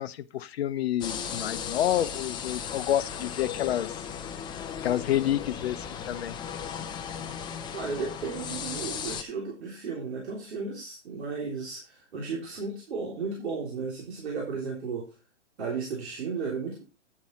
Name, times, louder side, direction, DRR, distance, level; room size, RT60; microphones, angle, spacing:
voice 1, 0.0-4.0 4.8-6.4, left 12 dB, 55° left, 0.8 m, -29 dB
sound 1, 1.0-9.2, left 7 dB, 10° left, 0.6 m, -36 dB
voice 2, 7.7-15.1 15.6-16.8, right 4 dB, 60° right, 3.4 m, -34 dB
9.6 x 7.2 x 4.3 m
hypercardioid pair, 125°, 36 cm